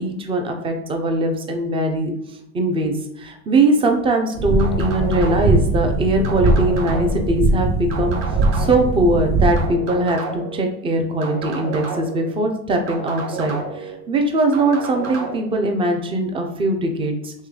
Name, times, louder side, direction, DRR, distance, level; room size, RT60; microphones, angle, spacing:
voice 1, 0.0-2.1 2.5-8.2 8.5-17.3, right 1 dB, 15° right, 4 dB, 0.4 m, -21 dB
sound 1, 4.4-9.7, right 2 dB, 55° right, 1.2 m, -20 dB
sound 2, 4.6-5.6 6.2-7.3 7.9-8.9 9.6-10.6 11.2-12.3 12.9-13.9 14.5-15.4, right 4 dB, 35° right, 1.1 m, -31 dB
3.2 x 3.1 x 3.7 m, 0.84 s
hypercardioid pair, 100°, 44 cm